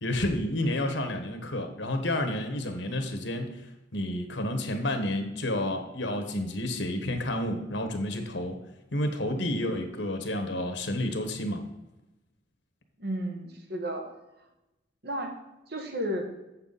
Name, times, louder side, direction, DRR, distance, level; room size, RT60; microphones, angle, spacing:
voice 1, 0.0-3.6 3.9-8.6 8.9-11.7, left 1 dB, 70° left, 6 dB, 1.3 m, -30 dB
voice 2, 13.0-14.1 15.0-15.3 15.7-16.3, right 1 dB, 60° right, 4 dB, 1.4 m, -32 dB
8.2 x 7.1 x 4.1 m, 0.95 s
head